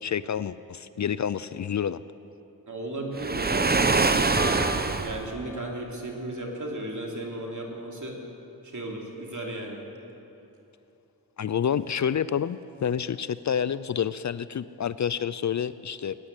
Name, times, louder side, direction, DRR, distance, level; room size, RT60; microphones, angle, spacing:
voice 1, 0.0-2.0 11.4-16.2, left 8 dB, 50° left, 16 dB, 0.4 m, -28 dB
voice 2, 2.7-4.3 5.0-8.1 8.6-9.8, right 1 dB, 50° right, -1 dB, 3.0 m, -35 dB
Waves surf, 3.1-5.3, right 3 dB, 25° right, 0.8 m, -24 dB
sound 1, 4.4-7.9, left 4 dB, 70° left, 1.3 m, -44 dB
17.0 x 10.0 x 8.2 m, 2.9 s
cardioid pair, 55°, 38 cm